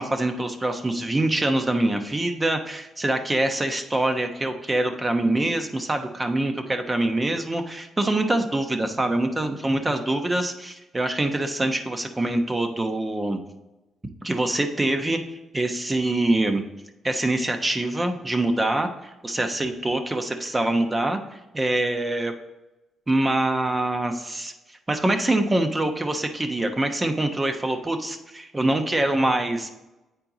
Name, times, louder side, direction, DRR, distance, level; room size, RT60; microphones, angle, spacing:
voice 1, 0.0-13.4 14.2-15.2 15.5-16.6 17.0-21.2 21.5-22.3 23.1-24.5 24.9-29.7, right 1 dB, 20° right, 6 dB, 0.9 m, -24 dB
8.7 x 4.4 x 3.9 m, 1.0 s
cardioid pair, 90°, 0 cm